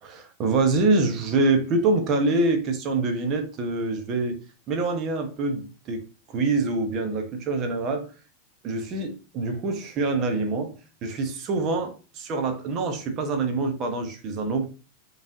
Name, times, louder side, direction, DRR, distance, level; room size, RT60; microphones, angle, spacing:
voice 1, 0.0-4.3 4.7-6.0 6.3-8.1 8.6-10.7 11.0-14.6, right 3 dB, 35° right, 1.0 m, -25 dB
5.2 x 3.2 x 2.7 m
figure-of-eight pair, 90°, 0 cm